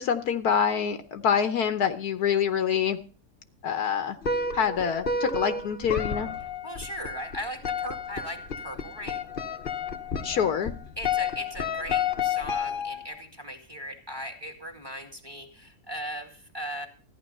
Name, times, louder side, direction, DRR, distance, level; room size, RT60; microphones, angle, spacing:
voice 1, 0.0-3.0 3.6-4.2 4.5-6.3 10.2-10.7, left 7 dB, 70° left, 10 dB, 1.3 m, -26 dB
sound 1, 4.2-13.2, left 5 dB, 40° left, 1.0 m, -31 dB
voice 2, 6.4-9.2 11.0-16.9, equal, 15° right, 4 dB, 1.9 m, -38 dB
14.5 x 10.0 x 5.5 m, 0.39 s
omnidirectional pair, 1.8 m